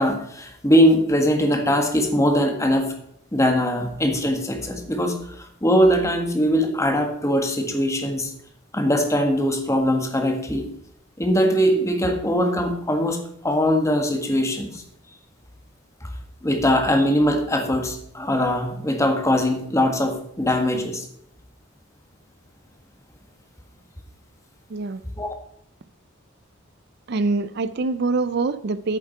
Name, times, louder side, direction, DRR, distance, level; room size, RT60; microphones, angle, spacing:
voice 1, 0.0-2.9 3.3-8.3 8.7-10.7 11.2-14.8 16.0-16.1 16.4-21.1 25.2-25.3, equal, 15° left, 4 dB, 1.5 m, -21 dB
voice 2, 24.7-25.0 27.1-29.0, right 3 dB, 55° right, 14 dB, 0.5 m, -24 dB
9.1 x 7.3 x 5.6 m, 0.70 s
head